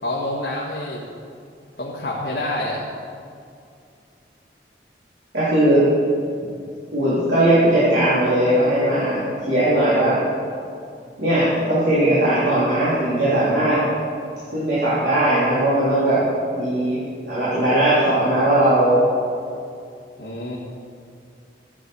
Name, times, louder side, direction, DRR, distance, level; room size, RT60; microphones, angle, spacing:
voice 1, 0.0-1.0 1.8-2.8 20.2-20.6, left 1 dB, 65° left, -5 dB, 1.6 m, -27 dB
voice 2, 5.3-5.8 6.9-10.2 11.2-13.8 14.5-16.2 16.5-17.0 17.3-19.0, right 1 dB, 75° right, -12 dB, 3.4 m, -18 dB
14.5 x 8.6 x 4.8 m, 2.4 s
head